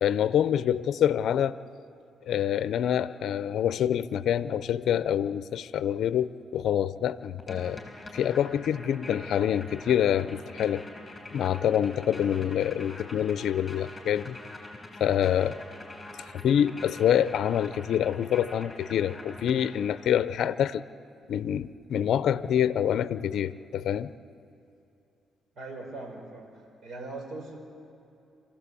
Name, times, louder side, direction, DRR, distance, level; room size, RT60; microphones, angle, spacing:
voice 1, 0.0-1.6 2.3-7.8 8.1-10.8 11.3-14.4 15.0-15.6 16.4-20.8 21.3-24.1, left 9 dB, 70° left, 14 dB, 0.6 m, -26 dB
sound 1, 7.4-20.2, left 2 dB, 15° left, 6.3 m, -44 dB
voice 2, 25.6-27.6, right 2 dB, 55° right, 2 dB, 5.1 m, -40 dB
27.0 x 15.5 x 8.4 m, 2.8 s
cardioid pair, 90°, 0 cm